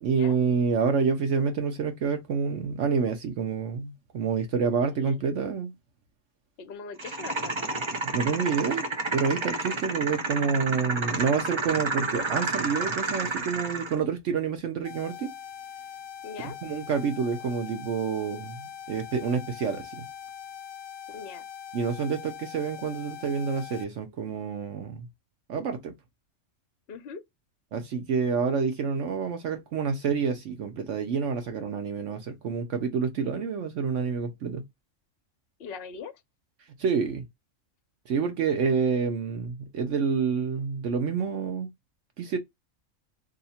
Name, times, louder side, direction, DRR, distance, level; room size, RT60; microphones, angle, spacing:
voice 1, 0.0-5.7 8.1-15.3 16.4-20.1 21.7-25.1 25.5-25.9 27.7-34.6 36.8-37.3 38.1-41.7 42.2-42.4, right 5 dB, 70° right, 1.1 m, -28 dB
voice 2, 6.6-7.8 16.2-16.6 21.1-21.5 26.9-27.2 35.6-36.1, left 5 dB, 55° left, 0.9 m, -41 dB
sound 1, 7.0-14.0, right 3 dB, 30° right, 0.6 m, -30 dB
sound 2, 14.8-23.8, left 8 dB, 80° left, 0.9 m, -42 dB
2.8 x 2.6 x 4.2 m
omnidirectional pair, 1.3 m